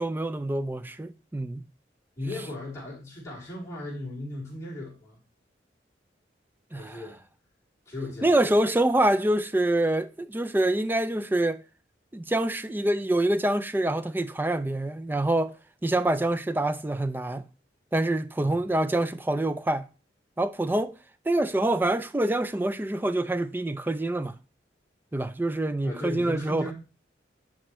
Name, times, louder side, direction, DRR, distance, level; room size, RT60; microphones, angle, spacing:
voice 1, 0.0-1.6 6.7-7.0 8.2-11.6 12.1-15.6 15.8-17.5 17.9-19.9 20.4-21.0 21.3-24.3 25.1-26.7, right 1 dB, 10° right, 0.3 m, -26 dB
voice 2, 2.2-5.2 6.7-7.2 7.8-8.3 18.4-18.7 25.8-26.7, left 2 dB, 15° left, 3.3 m, -37 dB
9.9 x 4.9 x 3.1 m
head